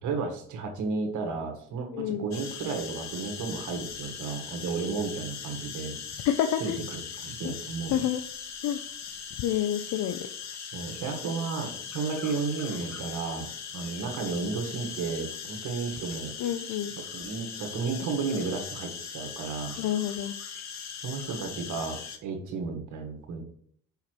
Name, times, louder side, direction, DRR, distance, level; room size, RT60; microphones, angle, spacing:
voice 1, 0.0-6.0 6.6-8.0 10.6-16.4 17.0-19.8 21.0-23.4, right 4 dB, 85° right, 3 dB, 1.9 m, -33 dB
voice 2, 1.9-2.3 6.2-6.8 7.4-7.5 7.9-8.2 8.6-8.8 9.4-10.2 16.4-16.9 19.8-20.3, left 11 dB, 90° left, 9 dB, 0.6 m, -28 dB
sound 1, 2.3-22.2, left 7 dB, 65° left, 1.1 m, -40 dB
5.9 x 5.8 x 4.6 m, 0.62 s
cardioid pair, 90°, 30 cm